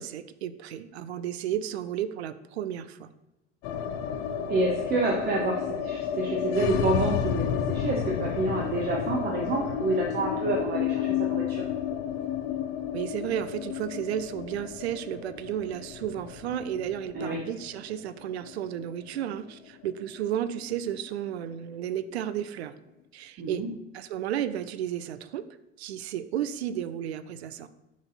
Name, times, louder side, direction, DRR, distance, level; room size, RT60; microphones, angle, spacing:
voice 1, 0.0-3.1 12.9-22.7 23.1-23.6 23.9-25.5 25.8-27.7, right 10 dB, 60° right, 14 dB, 0.5 m, -33 dB
sound 1, 3.6-19.7 20.0-20.1 20.4-21.1, left 9 dB, 40° left, 0.6 m, -32 dB
voice 2, 4.5-11.6 17.1-17.4 23.4-23.7, right 2 dB, 25° right, 0 dB, 0.8 m, -28 dB
6.0 x 4.1 x 4.0 m, 0.98 s
figure-of-eight pair, 80°, 36 cm